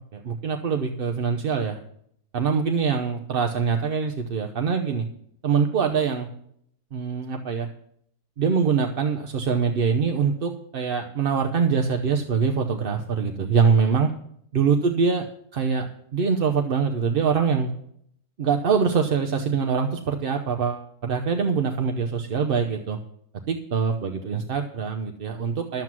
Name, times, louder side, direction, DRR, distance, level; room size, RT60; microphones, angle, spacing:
voice 1, 0.1-1.8 2.3-5.1 5.4-6.3 6.9-7.7 8.4-14.1 14.5-15.3 15.5-17.7 18.4-23.0 23.5-25.8, right 6 dB, 45° right, 4 dB, 0.8 m, -24 dB
12.0 x 7.7 x 6.1 m, 0.69 s
omnidirectional pair, 1.5 m